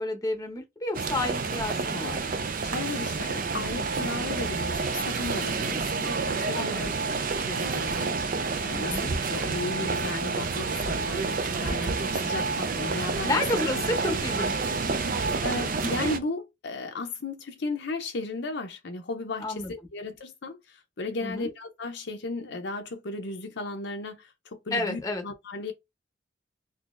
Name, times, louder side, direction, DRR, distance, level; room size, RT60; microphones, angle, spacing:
voice 1, 0.0-2.2 5.5-5.8 6.5-6.9 8.7-9.1 13.2-14.9 19.4-19.7 21.2-21.5 24.7-25.2, left 2 dB, 20° left, 0.8 m, -31 dB
sound 1, 0.9-16.2, right 4 dB, 45° right, 0.5 m, -29 dB
voice 2, 2.6-7.0 7.4-13.4 14.1-14.2 15.4-25.7, left 3 dB, 60° left, 0.6 m, -35 dB
3.8 x 2.7 x 2.5 m
head